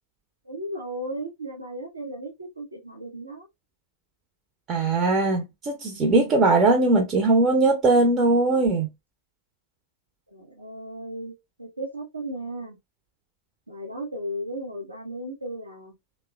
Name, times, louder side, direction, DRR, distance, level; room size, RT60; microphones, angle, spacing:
voice 1, 0.4-3.5 10.3-11.3 11.6-12.8 13.7-15.9, right 1 dB, 85° right, 0.6 m, -35 dB
voice 2, 4.7-8.9, right 2 dB, 30° right, 0.5 m, -20 dB
2.9 x 2.1 x 2.2 m
figure-of-eight pair, 90°, 0 cm